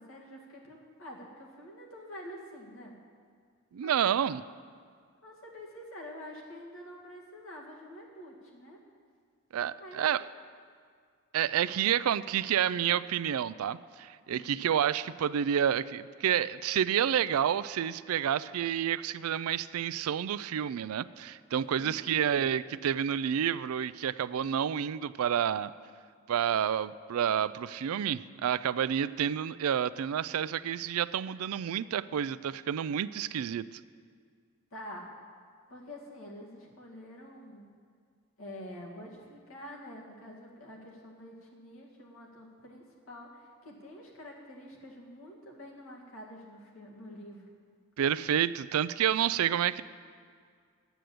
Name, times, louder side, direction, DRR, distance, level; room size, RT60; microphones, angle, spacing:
voice 1, 0.0-2.9 3.8-4.1 5.2-8.8 9.8-10.0 14.3-14.6 21.6-22.4 34.7-35.1 35.7-37.7 38.4-47.5, equal, 70° left, -2 dB, 2.1 m, -47 dB
voice 2, 3.7-4.4 9.5-10.3 11.3-25.7 26.3-33.6 48.0-49.8, right 9 dB, 85° right, 16 dB, 0.4 m, -29 dB
10.0 x 8.0 x 7.7 m, 2.1 s
head